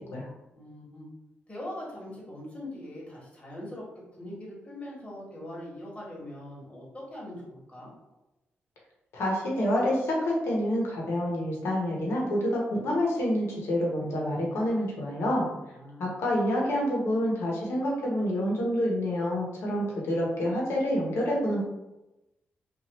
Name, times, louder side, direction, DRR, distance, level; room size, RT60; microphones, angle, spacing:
voice 1, 0.5-1.1 1.5-3.8 4.2-7.9 15.7-16.0, left 1 dB, 30° left, -4 dB, 1.3 m, -41 dB
voice 2, 9.1-15.5 16.0-21.6, equal, 80° left, -2 dB, 0.9 m, -27 dB
2.8 x 2.5 x 3.0 m, 0.97 s
cardioid pair, 80°, 4 cm